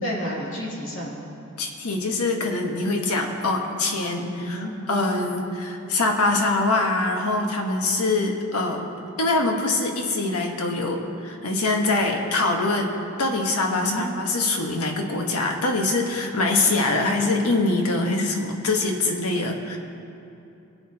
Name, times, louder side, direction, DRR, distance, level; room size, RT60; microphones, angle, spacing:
voice 1, 0.0-1.1 4.4-4.7 13.7-14.0, equal, 60° left, -5 dB, 2.8 m, -31 dB
voice 2, 1.6-8.8 9.2-19.8, left 2 dB, 85° left, 2 dB, 1.3 m, -24 dB
23.5 x 8.4 x 2.9 m, 2.7 s
head